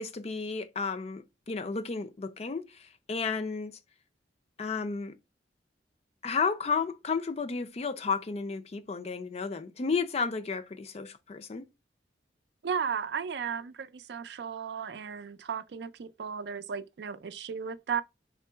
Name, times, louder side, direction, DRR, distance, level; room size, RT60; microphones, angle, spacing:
voice 1, 0.0-3.7 4.6-5.1 6.2-11.7, left 5 dB, 35° left, 0.4 m, -32 dB
voice 2, 12.6-18.0, right 6 dB, 65° right, 0.4 m, -35 dB
3.7 x 3.0 x 4.4 m
head